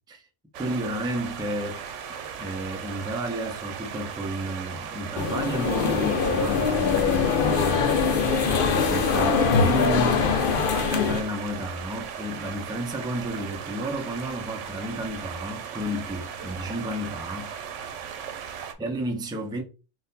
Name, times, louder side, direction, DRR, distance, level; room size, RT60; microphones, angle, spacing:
voice 1, 0.5-1.8 2.4-7.9 8.7-10.3 10.7-17.5 18.3-19.6, right 1 dB, 5° right, 0.4 m, -32 dB
sound 1, 0.5-18.7, right 7 dB, 80° right, 1.0 m, -37 dB
sound 2, 5.2-11.2, left 5 dB, 55° left, 0.7 m, -23 dB
3.9 x 2.6 x 4.0 m
omnidirectional pair, 1.2 m